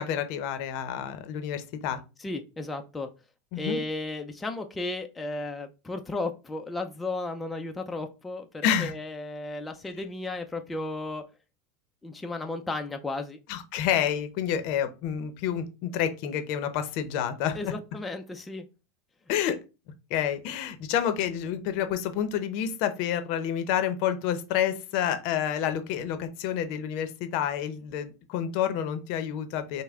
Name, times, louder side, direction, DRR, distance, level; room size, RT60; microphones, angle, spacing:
voice 1, 0.0-2.0 3.5-3.8 8.6-8.9 13.5-17.7 19.3-19.6 20.1-29.8, left 9 dB, 60° left, 9 dB, 0.7 m, -29 dB
voice 2, 2.2-3.1 3.6-11.2 12.0-13.4 17.5-18.6, left 2 dB, 10° left, 4 dB, 0.5 m, -34 dB
5.3 x 2.1 x 3.6 m, 0.30 s
supercardioid pair, 115°, 0 cm